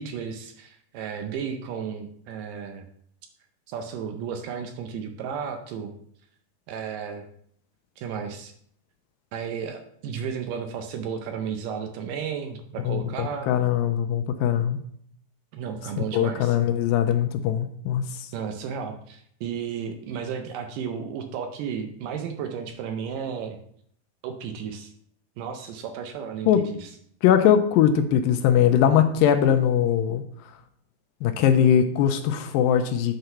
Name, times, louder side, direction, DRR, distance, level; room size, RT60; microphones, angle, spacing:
voice 1, 0.0-2.8 3.7-5.9 6.7-7.2 8.0-8.5 9.3-13.5 15.5-16.6 18.3-23.6 24.2-24.9 25.4-26.9, right 7 dB, 80° right, 6 dB, 2.1 m, -33 dB
voice 2, 12.8-14.8 16.0-18.3 26.5-26.7 27.2-30.2 31.2-33.2, left 9 dB, 80° left, 8 dB, 2.2 m, -21 dB
7.8 x 3.9 x 5.6 m, 0.65 s
omnidirectional pair, 4.2 m